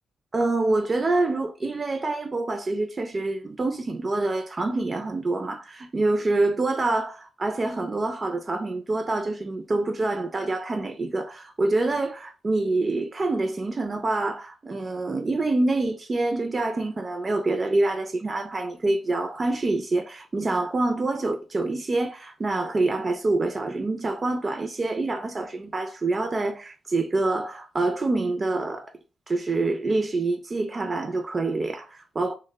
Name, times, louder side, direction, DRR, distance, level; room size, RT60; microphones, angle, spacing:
voice 1, 0.3-28.9 29.3-32.4, right 2 dB, 35° right, 0.3 m, -26 dB
2.1 x 2.0 x 3.3 m
supercardioid pair, 60°, 0 cm